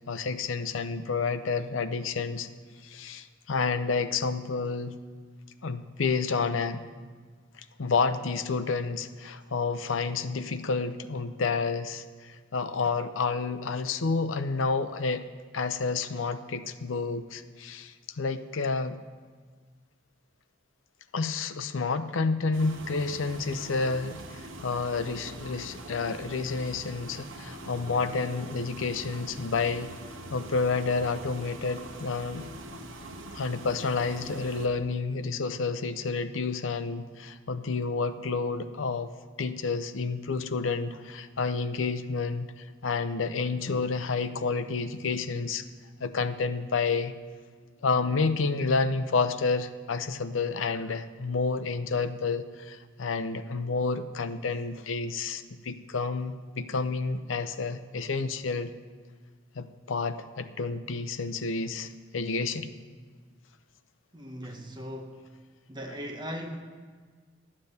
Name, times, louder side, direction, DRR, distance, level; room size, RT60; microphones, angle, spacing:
voice 1, 0.1-2.5 2.8-4.9 5.6-6.8 7.8-15.2 15.5-19.0 21.1-29.9 30.3-32.5 33.3-39.1 39.4-45.6 46.0-47.1 47.8-58.7 59.5-62.7, left 4 dB, 75° left, 10 dB, 0.6 m, -30 dB
sound 1, 22.5-34.7, right 1 dB, 80° right, 1.1 m, -43 dB
voice 2, 64.1-65.3 65.7-66.6, equal, 25° right, 3 dB, 1.1 m, -39 dB
11.5 x 7.5 x 6.7 m, 1.5 s
head